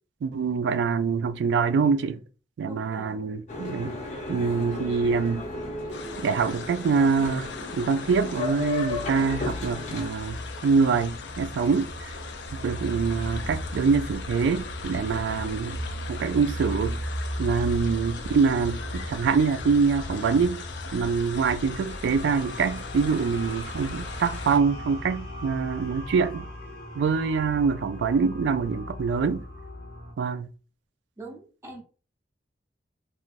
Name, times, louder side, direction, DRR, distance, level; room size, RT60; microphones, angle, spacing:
voice 1, 0.2-2.2 2.6-4.0 4.3-5.5 6.2-12.1 12.5-15.8 16.1-17.0 17.4-20.6 20.9-26.5 27.0-29.4 30.2-30.5, right 5 dB, 90° right, 0.3 m, -25 dB
voice 2, 2.7-3.3 31.2-31.8, right 2 dB, 15° right, 0.6 m, -42 dB
Boat Water vehicle, 3.5-10.1, left 3 dB, 40° left, 0.6 m, -34 dB
sound 1, 5.9-24.6, left 2 dB, 90° left, 0.5 m, -35 dB
sound 2, 20.9-30.1, left 1 dB, 70° left, 0.9 m, -40 dB
3.0 x 2.4 x 2.5 m
head